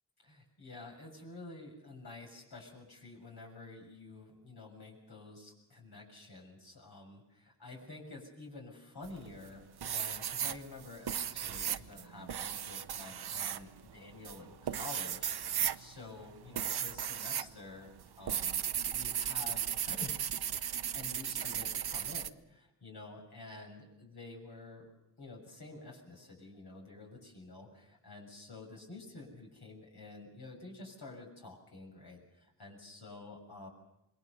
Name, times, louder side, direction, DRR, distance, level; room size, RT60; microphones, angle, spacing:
voice 1, 0.2-17.9 18.2-20.1 20.8-24.8 25.2-33.7, left 2 dB, 80° left, 0 dB, 7.1 m, -50 dB
sound 1, 9.0-9.5 9.8-17.5 17.8-22.3, right 9 dB, 90° right, 0.8 m, -36 dB
27.0 x 22.0 x 6.8 m, 0.89 s
wide cardioid pair, 75°, 38 cm